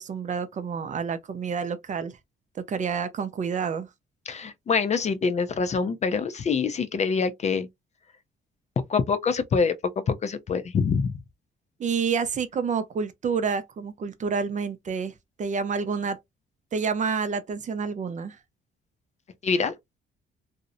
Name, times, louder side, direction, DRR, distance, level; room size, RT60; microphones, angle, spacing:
voice 1, 0.0-2.2 2.6-3.9 11.8-16.2 16.7-18.4, right 5 dB, 40° right, 0.4 m, -29 dB
voice 2, 4.3-7.7 8.9-9.7 10.1-11.1 19.4-19.7, left 5 dB, 35° left, 0.4 m, -25 dB
2.6 x 2.0 x 2.4 m
cardioid pair, 90°, 20 cm